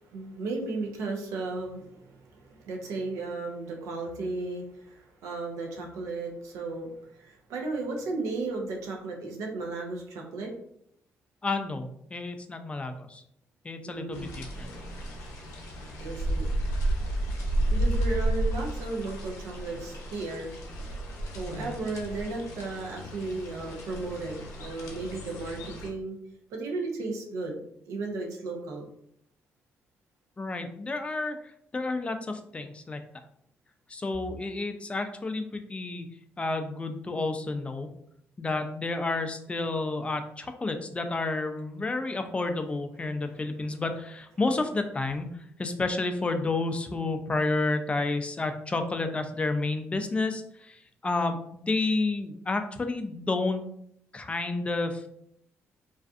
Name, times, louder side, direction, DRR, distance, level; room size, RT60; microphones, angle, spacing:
voice 1, 0.0-10.5 13.9-14.4 16.0-16.5 17.7-20.5 21.3-26.2 26.5-27.6 27.9-28.9, right 3 dB, 85° right, 1 dB, 0.5 m, -35 dB
voice 2, 11.4-13.2 13.6-14.7 21.4-21.8 30.4-31.4 31.7-33.0 33.9-36.1 36.4-37.9 38.4-45.3 45.6-53.6 54.1-55.1, left 3 dB, 25° left, 7 dB, 0.4 m, -30 dB
sound 1, 14.1-25.9, right 1 dB, 85° left, 0.6 m, -32 dB
2.4 x 2.3 x 2.4 m, 0.71 s
cardioid pair, 75°, 5 cm